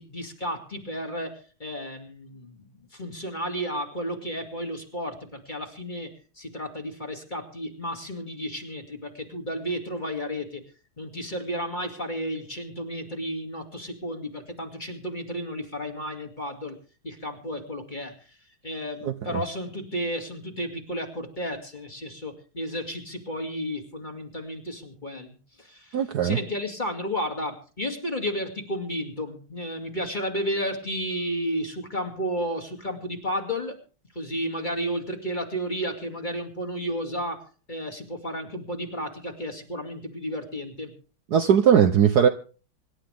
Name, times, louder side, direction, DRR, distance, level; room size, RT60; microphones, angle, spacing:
voice 1, 0.0-10.6 11.0-16.8 17.0-18.1 18.6-33.8 34.1-40.9, equal, 20° left, 4 dB, 2.5 m, -32 dB
voice 2, 19.0-19.4 25.9-26.4 41.3-42.3, right 8 dB, 60° right, 7 dB, 1.3 m, -19 dB
25.5 x 12.0 x 3.5 m, 0.37 s
omnidirectional pair, 2.3 m